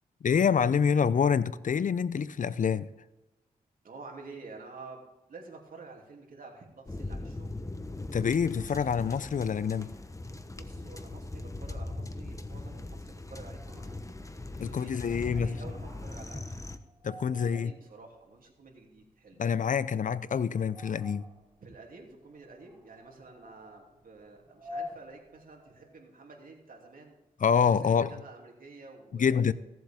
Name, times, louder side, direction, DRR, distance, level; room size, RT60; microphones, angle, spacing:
voice 1, 0.2-2.9 8.1-9.9 14.6-15.5 17.0-17.7 19.4-21.3 27.4-28.1 29.2-29.5, left 7 dB, 55° left, 0.5 m, -26 dB
voice 2, 3.8-7.6 10.5-13.9 14.5-16.6 17.2-19.5 21.6-27.2 27.7-29.5, right 3 dB, 65° right, 3.0 m, -49 dB
sound 1, 6.9-16.8, left 2 dB, 20° left, 1.0 m, -40 dB
sound 2, 13.5-26.0, left 2 dB, 15° right, 3.9 m, -50 dB
17.0 x 7.7 x 3.6 m
cardioid pair, 60°, 16 cm